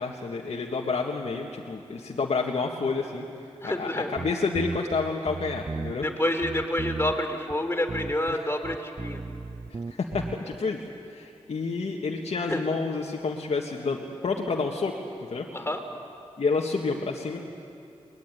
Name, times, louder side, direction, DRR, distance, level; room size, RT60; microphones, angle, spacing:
voice 1, 0.0-3.3 3.6-6.1 9.7-10.8 11.1-14.9 15.3-15.5 16.4-17.4, left 4 dB, 70° left, -1 dB, 1.9 m, -29 dB
voice 2, 3.6-4.2 6.0-9.2 12.5-12.6 15.5-15.8, left 1 dB, 20° left, 5 dB, 3.6 m, -28 dB
sound 1, 4.2-6.1 6.4-7.2 7.5-7.6 7.9-8.4 8.6-10.6, right 4 dB, 35° right, 0.5 m, -35 dB
23.0 x 20.0 x 9.9 m, 2.6 s
cardioid pair, 50°, 11 cm